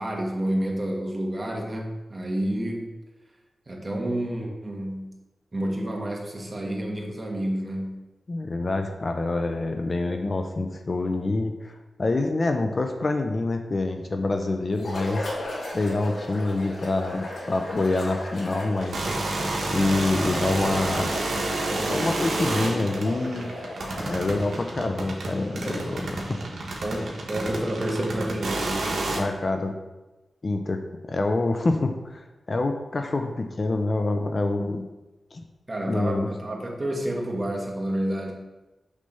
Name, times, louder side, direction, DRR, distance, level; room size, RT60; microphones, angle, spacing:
voice 1, 0.0-2.9 3.7-5.1 5.5-7.9 25.6-25.8 26.8-28.7 35.7-38.3, right 1 dB, 30° right, 0 dB, 1.3 m, -29 dB
voice 2, 8.3-15.3 15.7-19.1 19.7-21.1 21.8-23.5 24.0-26.4 26.7-26.8 29.1-29.8 30.4-30.8 31.1-34.8 35.3-35.4 35.9-36.3, left 2 dB, 45° left, 5 dB, 0.5 m, -26 dB
sound 1, 14.7-24.6, left 1 dB, 80° left, 1.8 m, -36 dB
sound 2, 18.8-29.2, right 2 dB, 85° right, 1.1 m, -30 dB
6.5 x 3.3 x 5.4 m, 1.1 s
wide cardioid pair, 85°, 0 cm